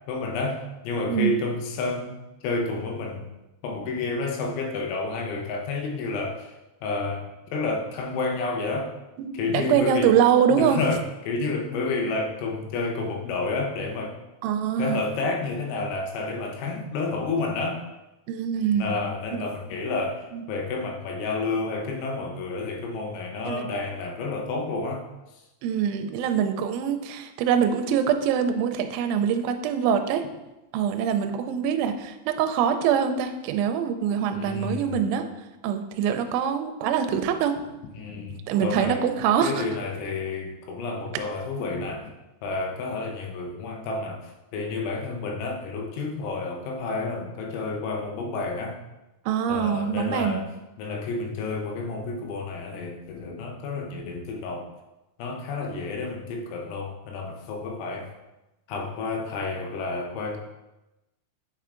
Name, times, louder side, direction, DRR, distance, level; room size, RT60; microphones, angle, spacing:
voice 1, 0.1-3.3 3.6-6.5 6.8-8.9 9.4-10.1 10.5-14.2 14.8-17.8 18.7-25.1 25.3-25.4 34.3-35.1 37.9-39.1 39.4-42.1 42.4-48.8 49.5-50.5 50.8-54.7 55.2-58.1 58.7-60.4, left 3 dB, 80° left, 1 dB, 3.2 m, -30 dB
voice 2, 9.2-10.8 14.4-15.0 18.3-18.9 19.3-19.4 20.3-20.4 21.5-21.6 23.5-23.7 25.6-30.3 30.7-35.3 35.6-37.6 38.5-39.6 49.3-50.4, right 8 dB, 85° right, 7 dB, 2.9 m, -24 dB
8.9 x 4.5 x 2.5 m, 1.0 s
omnidirectional pair, 5.5 m